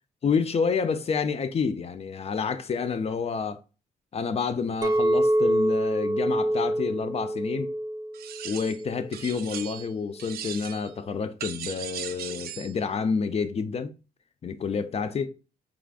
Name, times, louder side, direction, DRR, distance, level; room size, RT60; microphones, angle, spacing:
voice 1, 0.2-3.6 4.1-7.7 8.4-13.9 14.4-15.3, left 5 dB, 40° left, 0.5 m, -29 dB
Chink clink, 4.8-9.1 9.6-10.0, right 1 dB, 25° right, 0.6 m, -26 dB
sound 1, 8.1-8.8 9.1-9.9 10.2-10.9 11.4-12.7, right 10 dB, 75° right, 0.5 m, -38 dB
4.7 x 2.4 x 2.3 m
cardioid pair, 75°, 16 cm